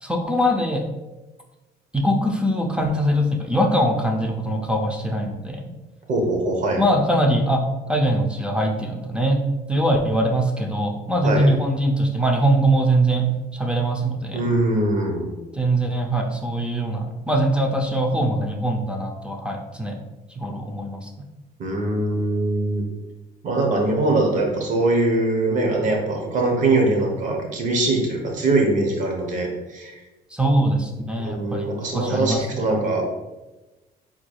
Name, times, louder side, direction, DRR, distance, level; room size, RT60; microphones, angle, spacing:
voice 1, 0.0-0.8 1.9-5.7 6.8-13.3 13.5-14.5 15.5-20.0 20.4-21.1 30.3-32.6, right 1 dB, 5° right, 2 dB, 0.5 m, -22 dB
voice 2, 6.1-6.8 11.2-11.5 14.3-15.3 21.6-22.9 23.4-30.0 31.2-33.0, right 2 dB, 50° right, 1 dB, 1.1 m, -22 dB
4.5 x 3.9 x 2.3 m, 1.1 s
cardioid pair, 110°, 17 cm